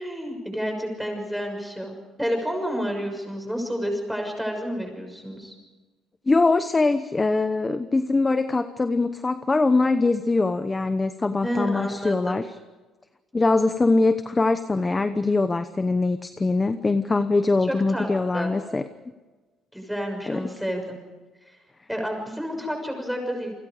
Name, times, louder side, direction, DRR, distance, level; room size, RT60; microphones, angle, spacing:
voice 1, 0.0-5.5 11.4-12.4 17.6-18.1 18.3-18.5 19.7-21.0 21.5-21.6 21.9-23.5, equal, ahead, 3 dB, 6.6 m, -30 dB
voice 2, 6.3-12.5 13.3-18.8 20.3-20.4, left 3 dB, 15° left, 10 dB, 0.9 m, -22 dB
29.5 x 25.0 x 5.0 m, 1.3 s
cardioid pair, 145°, 0 cm